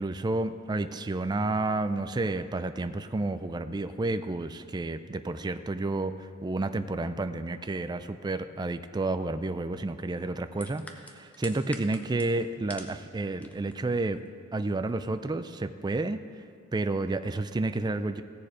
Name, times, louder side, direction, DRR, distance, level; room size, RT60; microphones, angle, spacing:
voice 1, 0.0-14.2 14.5-16.2 16.7-18.2, right 2 dB, 20° right, 10 dB, 0.4 m, -30 dB
sound 1, 10.6-13.0 13.3-13.7 14.1-14.3, left 1 dB, 5° left, 0.7 m, -44 dB
16.5 x 7.0 x 4.9 m, 2.3 s
head